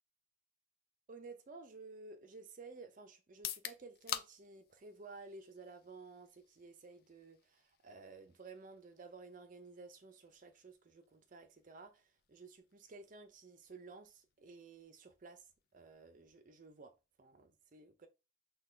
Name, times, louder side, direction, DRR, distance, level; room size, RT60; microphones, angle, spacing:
voice 1, 1.1-16.9 17.2-18.1, right 3 dB, 40° right, 0.4 m, -54 dB
sound 1, 3.3-17.1, left 9 dB, 50° left, 0.4 m, -52 dB
6.1 x 2.2 x 3.2 m
head